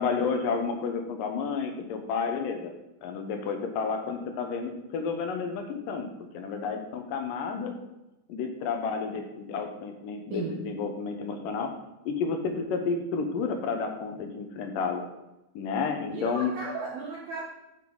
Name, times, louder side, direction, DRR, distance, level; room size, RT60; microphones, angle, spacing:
voice 1, 0.0-2.7 3.0-6.1 6.3-7.7 8.3-11.7 12.1-15.0 15.6-16.5, left 5 dB, 75° left, 4 dB, 2.0 m, -31 dB
voice 2, 16.1-17.5, right 4 dB, 80° right, -2 dB, 1.6 m, -35 dB
13.5 x 6.0 x 3.9 m, 0.95 s
omnidirectional pair, 5.1 m